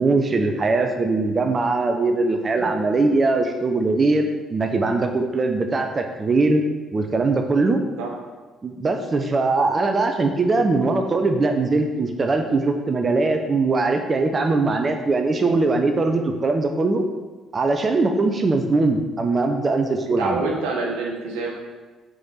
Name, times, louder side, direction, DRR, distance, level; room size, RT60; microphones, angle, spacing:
voice 1, 0.0-6.6 6.9-7.8 8.6-17.0 17.5-20.4, right 3 dB, 35° right, 5 dB, 0.9 m, -21 dB
voice 2, 20.0-21.5, right 3 dB, 70° right, -1 dB, 1.8 m, -27 dB
6.7 x 5.5 x 6.5 m, 1.3 s
figure-of-eight pair, 45°, 0 cm